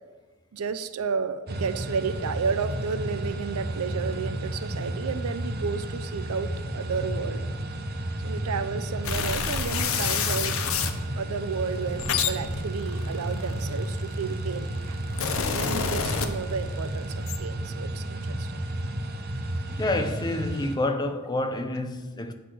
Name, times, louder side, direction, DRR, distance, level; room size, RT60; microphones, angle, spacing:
voice 1, 0.5-7.5 8.2-10.6 11.2-15.0 15.5-18.5, right 5 dB, 80° right, 0.5 m, -32 dB
sound 1, 1.5-20.8, right 1 dB, 45° right, 0.7 m, -32 dB
sound 2, 9.0-11.0 11.7-14.1 14.8-16.8 17.0-17.4, left 7 dB, 70° left, 0.6 m, -28 dB
voice 2, 19.7-22.3, left 2 dB, 20° left, 0.4 m, -28 dB
8.2 x 4.0 x 6.2 m
head